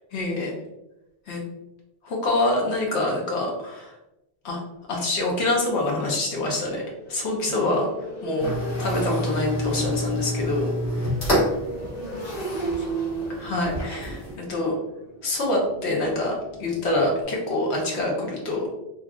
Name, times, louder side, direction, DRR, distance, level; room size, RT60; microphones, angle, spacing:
voice 1, 0.1-0.5 1.3-1.5 2.0-3.9 4.4-4.6 4.9-6.8 7.1-7.9 8.2-8.5 8.8-10.7 11.0-11.1 13.3-14.7 15.2-16.3 16.6-18.7, left 2 dB, 85° left, -1 dB, 1.1 m, -25 dB
Motorcycle, 5.2-5.4 5.6-17.2, right 1 dB, 35° left, 0.6 m, -35 dB
sound 1, 8.4-14.3, equal, 55° left, 1.6 m, -28 dB
voice 2, 11.6-13.4, right 1 dB, 40° right, -4 dB, 0.5 m, -43 dB
3.0 x 2.3 x 2.4 m, 0.93 s
omnidirectional pair, 1.1 m